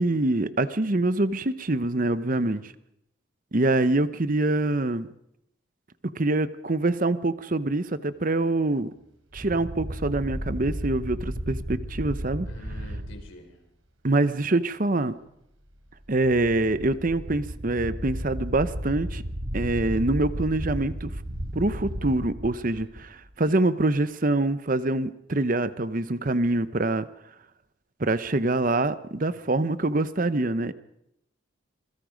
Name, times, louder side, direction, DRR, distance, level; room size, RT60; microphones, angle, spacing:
voice 1, 0.0-2.6 3.5-5.1 6.2-8.9 9.3-12.5 14.0-15.1 16.1-19.2 19.5-21.1 21.5-22.9 23.4-27.1 28.0-30.7, right 2 dB, 40° right, 14 dB, 0.8 m, -25 dB
voice 2, 2.3-2.7 12.5-13.6 22.7-23.1 29.3-29.4, equal, 80° left, 5 dB, 4.5 m, -47 dB
sound 1, 9.3-13.2 16.0-23.3, equal, 90° right, 3.7 m, -34 dB
26.5 x 21.0 x 5.2 m, 0.81 s
head